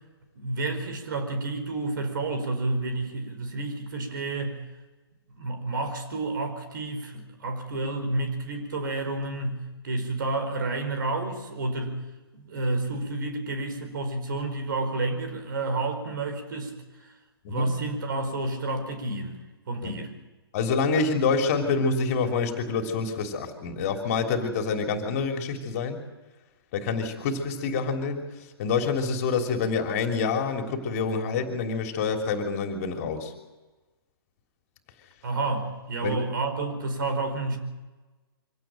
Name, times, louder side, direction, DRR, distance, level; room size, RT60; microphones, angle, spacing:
voice 1, 0.3-4.6 5.3-12.0 12.3-17.1 17.5-19.4 19.7-20.2 35.2-37.6, right 2 dB, 55° right, 7 dB, 5.0 m, -30 dB
voice 2, 20.5-26.0 26.7-28.2 28.6-33.3 36.0-36.2, left 4 dB, 35° left, 5 dB, 3.2 m, -27 dB
25.0 x 17.5 x 9.0 m, 1.2 s
figure-of-eight pair, 125°, 13 cm